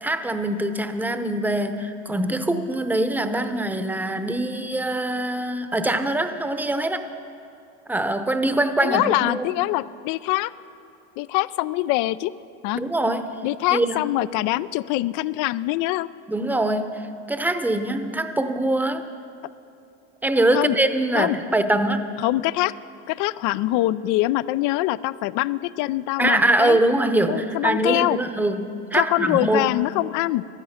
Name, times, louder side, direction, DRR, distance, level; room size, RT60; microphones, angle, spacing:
voice 1, 0.0-7.1 7.9-9.5 12.7-13.4 13.7-14.1 16.3-19.1 20.2-22.1 26.2-29.7, right 1 dB, 5° right, 9 dB, 0.8 m, -23 dB
voice 2, 8.8-10.5 11.2-12.3 12.6-12.8 13.4-16.1 20.5-20.7 21.1-21.4 22.2-22.7 23.1-26.8 27.3-28.2 29.0-30.4, left 17 dB, 60° left, 17 dB, 0.4 m, -24 dB
15.0 x 12.0 x 5.7 m, 2.7 s
supercardioid pair, 105°, 35 cm